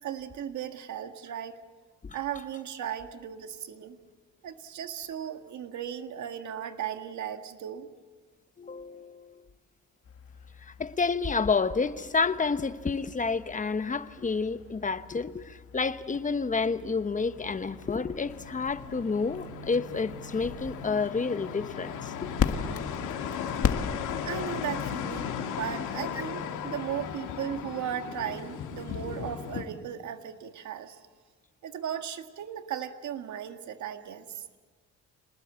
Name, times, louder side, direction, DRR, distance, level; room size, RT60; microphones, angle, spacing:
voice 1, 0.0-1.6 2.1-4.0 4.4-7.9 24.2-31.0 31.6-34.4, right 9 dB, 70° right, 1.7 m, -36 dB
voice 2, 8.6-9.4 10.8-22.3, left 4 dB, 25° left, 1.1 m, -29 dB
sound 1, 10.0-24.4, left 7 dB, 50° left, 1.9 m, -38 dB
sound 2, 16.2-29.6, left 7 dB, 85° left, 2.4 m, -37 dB
26.5 x 20.0 x 8.2 m
cardioid pair, 90°, 30 cm